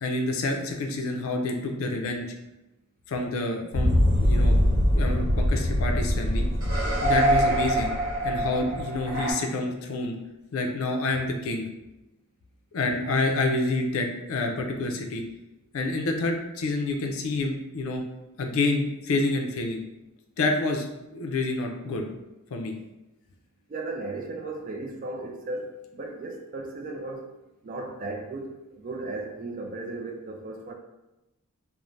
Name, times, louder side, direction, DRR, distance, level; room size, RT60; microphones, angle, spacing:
voice 1, 0.0-2.3 3.1-4.5 4.9-6.4 7.0-7.9 8.2-10.1 10.5-11.7 12.7-15.2 15.7-18.0 18.4-19.8 20.4-22.0 22.5-22.7, left 2 dB, 70° left, 3 dB, 0.4 m, -28 dB
sound 1, 3.7-9.3, equal, 60° right, 1.0 m, -23 dB
voice 2, 23.7-27.3 27.6-30.7, right 2 dB, 40° right, 2 dB, 0.3 m, -35 dB
2.5 x 2.1 x 3.1 m, 0.98 s
head